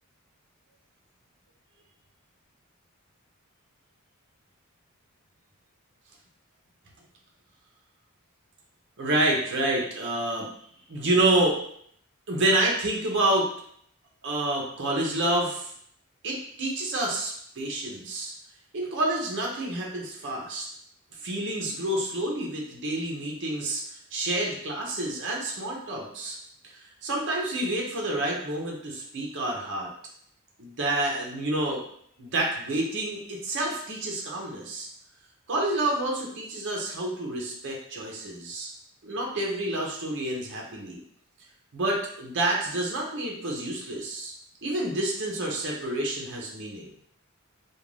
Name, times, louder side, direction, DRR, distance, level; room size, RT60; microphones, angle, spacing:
voice 1, 9.0-10.5 10.9-11.6 12.3-13.5 14.2-15.7 16.2-18.3 18.7-20.7 21.2-23.8 24.1-26.4 27.0-29.9 30.6-31.8 32.2-34.9 35.5-38.7 39.0-41.0 41.7-44.3 44.6-46.9, right 1 dB, 60° right, -1 dB, 0.6 m, -28 dB
2.4 x 2.2 x 3.2 m, 0.66 s
head